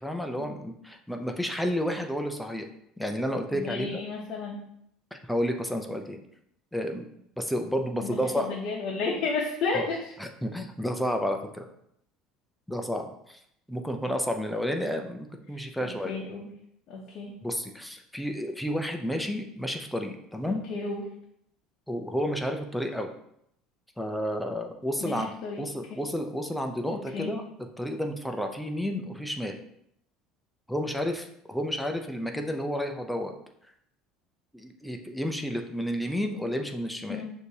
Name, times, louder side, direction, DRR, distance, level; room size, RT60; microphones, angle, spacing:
voice 1, 0.0-2.7 3.0-4.0 5.1-6.2 6.7-7.1 7.4-8.5 9.7-9.9 10.2-11.7 12.7-13.4 13.7-16.1 17.4-20.6 21.9-23.1 24.0-25.3 25.6-27.4 27.8-29.6 30.7-33.3 34.5-37.2, equal, ahead, 4 dB, 0.4 m, -31 dB
voice 2, 3.5-4.7 8.0-10.1 14.8-14.9 15.8-16.5 16.9-17.4 20.5-21.1 25.0-25.6 26.9-27.3 37.1-37.2, left 3 dB, 50° left, -3 dB, 0.7 m, -33 dB
6.2 x 2.7 x 2.7 m, 0.74 s
cardioid pair, 155°, 0 cm